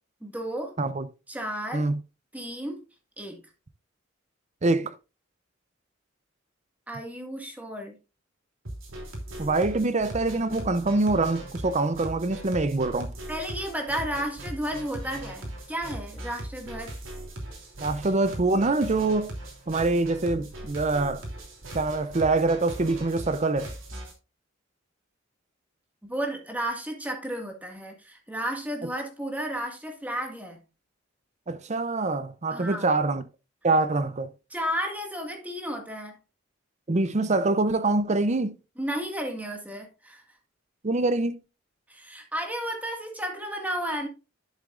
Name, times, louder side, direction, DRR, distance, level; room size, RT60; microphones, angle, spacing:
voice 1, 0.2-0.7 1.3-1.9 2.3-2.8 3.2-3.4 6.9-8.0 13.3-17.0 26.0-30.6 32.5-32.9 34.5-36.2 38.8-40.2 41.9-44.1, equal, 10° right, 1.9 m, -33 dB
voice 2, 4.6-4.9 9.4-13.1 17.8-19.3 19.7-21.3 21.7-23.7 31.5-33.2 33.6-34.3 36.9-38.6 40.8-41.4, right 3 dB, 35° right, 0.6 m, -25 dB
sound 1, 8.7-24.1, right 1 dB, 80° right, 3.1 m, -39 dB
11.0 x 7.2 x 2.5 m
head